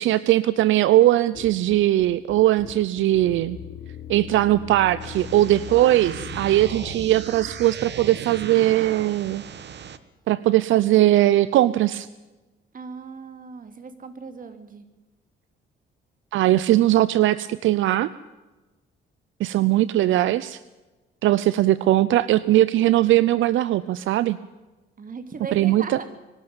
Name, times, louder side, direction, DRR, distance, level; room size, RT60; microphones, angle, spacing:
voice 1, 0.0-3.6 4.1-9.4 10.3-12.1 16.3-18.1 19.4-20.6 21.2-24.4 25.5-26.0, right 14 dB, 80° right, 17 dB, 0.6 m, -20 dB
sound 1, 1.3-7.2, left 8 dB, 75° left, 3.1 m, -39 dB
sound 2, 5.0-10.0, right 8 dB, 60° right, 1.4 m, -36 dB
voice 2, 12.7-14.8 25.0-26.1, right 5 dB, 45° right, 8 dB, 3.0 m, -38 dB
23.5 x 12.5 x 8.9 m, 1.2 s
cardioid pair, 90°, 20 cm